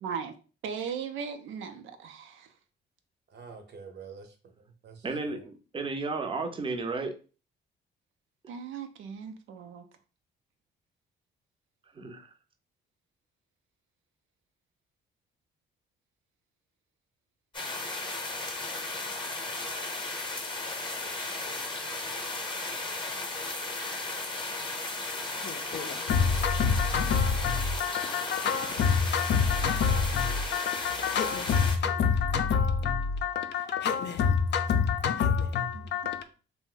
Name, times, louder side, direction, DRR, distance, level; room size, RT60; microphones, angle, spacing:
voice 1, 0.0-0.3 0.6-2.5 8.5-9.8 35.7-35.9, right 7 dB, 80° right, 0.5 m, -38 dB
voice 2, 3.3-5.4, right 5 dB, 60° right, 0.8 m, -48 dB
voice 3, 5.0-7.1 11.9-12.3, right 3 dB, 25° right, 0.6 m, -33 dB
sound 1, 17.5-31.8, left 2 dB, 25° left, 0.8 m, -35 dB
voice 4, 25.4-36.2, left 6 dB, 65° left, 0.5 m, -27 dB
2.6 x 2.1 x 3.7 m
cardioid pair, 90°, 20 cm